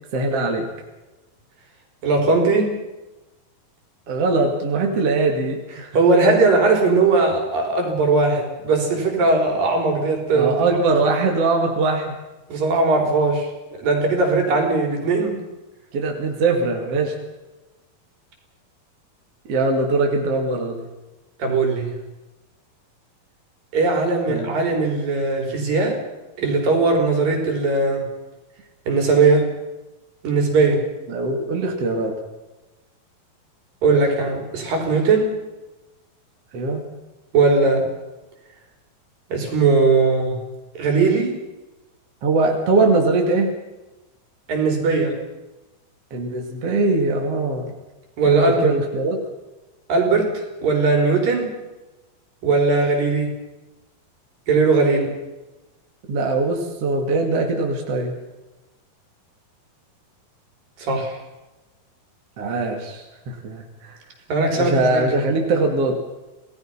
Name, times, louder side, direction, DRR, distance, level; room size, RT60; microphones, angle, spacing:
voice 1, 0.1-0.7 4.1-5.9 10.3-12.1 15.9-17.2 19.5-20.8 24.3-24.6 31.1-32.2 36.5-36.8 42.2-43.5 46.1-47.7 48.3-49.2 56.1-58.2 62.4-64.0 64.6-65.9, right 3 dB, 45° right, 2 dB, 3.1 m, -21 dB
voice 2, 2.0-2.7 5.9-10.5 12.5-13.5 13.8-15.4 21.4-21.9 23.7-26.0 26.4-28.1 28.9-29.5 30.2-30.8 33.8-35.4 37.3-37.9 39.3-40.4 40.8-41.3 44.5-45.2 48.2-48.7 49.9-51.5 52.4-53.3 54.5-55.2 60.8-61.2 64.3-65.2, right 3 dB, 70° right, 2 dB, 5.7 m, -19 dB
27.5 x 18.5 x 5.7 m, 1.1 s
omnidirectional pair, 4.2 m